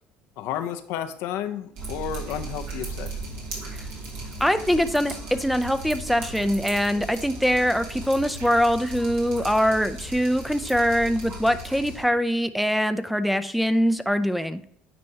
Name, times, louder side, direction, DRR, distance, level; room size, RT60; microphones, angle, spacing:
voice 1, 0.4-3.1, left 9 dB, 75° left, 8 dB, 0.6 m, -31 dB
Drip, 1.7-12.0, right 2 dB, 75° right, 2.3 m, -37 dB
voice 2, 4.4-14.6, equal, ahead, 9 dB, 0.5 m, -23 dB
9.5 x 4.4 x 2.8 m, 0.67 s
supercardioid pair, 75°, 5 cm